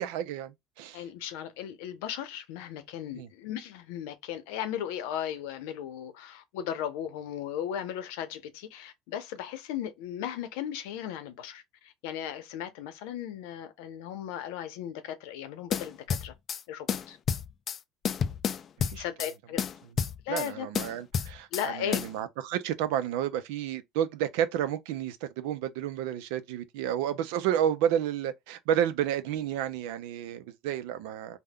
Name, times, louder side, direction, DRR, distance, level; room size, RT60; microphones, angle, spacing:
voice 1, 0.0-1.0 3.2-3.3 18.9-19.0 20.3-31.4, right 10 dB, 80° right, 0.5 m, -31 dB
voice 2, 0.9-16.3 16.7-17.2 19.0-19.6 20.2-20.7 21.5-22.0, left 10 dB, 80° left, 0.7 m, -36 dB
sound 1, 15.7-16.6 16.9-17.8 18.0-19.3 19.6-20.5 20.7-21.7 21.9-22.1, left 7 dB, 35° left, 0.3 m, -30 dB
3.5 x 2.2 x 2.2 m
supercardioid pair, 120°, 0 cm